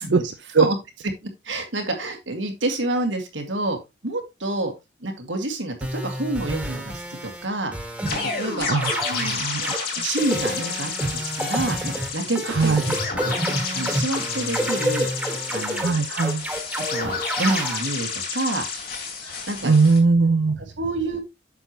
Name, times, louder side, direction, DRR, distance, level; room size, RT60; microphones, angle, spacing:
voice 1, 0.0-0.3 0.6-0.8 1.2-4.7 5.0-7.7 8.1-12.8 13.2-13.3 13.7-15.1 15.5-16.0 16.9-18.6 19.5-19.7 20.8-21.2, right 2 dB, 85° right, 4 dB, 2.0 m, -28 dB
sound 1, 5.8-7.5 7.7-8.6 8.8-9.8 10.2-17.8, right 1 dB, 5° right, 1.5 m, -29 dB
sound 2, 8.0-20.0, left 5 dB, 55° left, 3.6 m, -30 dB
voice 2, 8.7-9.7 12.6-12.8 15.8-16.4 19.6-20.6, right 4 dB, 65° right, 7 dB, 0.6 m, -19 dB
8.2 x 6.6 x 3.0 m, 0.22 s
head